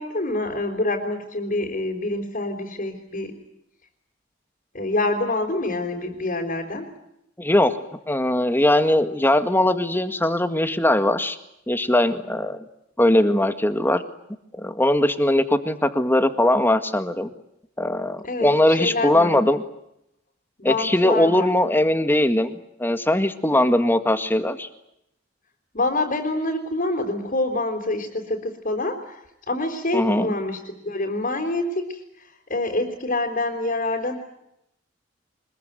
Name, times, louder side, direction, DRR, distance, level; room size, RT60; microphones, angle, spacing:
voice 1, 0.0-3.3 4.7-6.9 18.2-19.3 20.6-21.5 25.7-34.2, left 2 dB, 45° left, 0 dB, 4.3 m, -26 dB
voice 2, 7.4-7.8 8.1-11.4 11.7-12.6 13.0-14.0 14.6-17.3 17.8-19.6 20.6-22.5 22.8-24.7 29.9-30.3, left 1 dB, 10° left, 9 dB, 1.8 m, -20 dB
25.0 x 22.0 x 9.3 m, 0.80 s
head